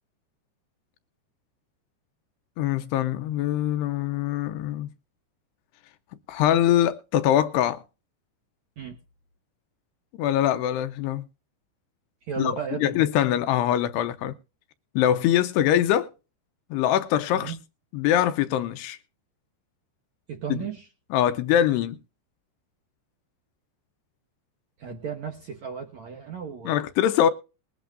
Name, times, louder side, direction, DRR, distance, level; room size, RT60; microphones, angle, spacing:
voice 1, 2.6-4.9 6.3-7.8 10.2-11.2 12.4-12.6 12.8-14.3 15.0-16.1 16.7-17.5 17.9-19.0 20.5-20.6 21.1-22.0 26.7-27.3, left 11 dB, 80° left, 2.6 m, -23 dB
voice 2, 12.2-13.0 17.3-17.6 20.3-20.9 24.8-26.9, right 7 dB, 65° right, 1.9 m, -34 dB
21.0 x 11.5 x 2.5 m
omnidirectional pair, 5.1 m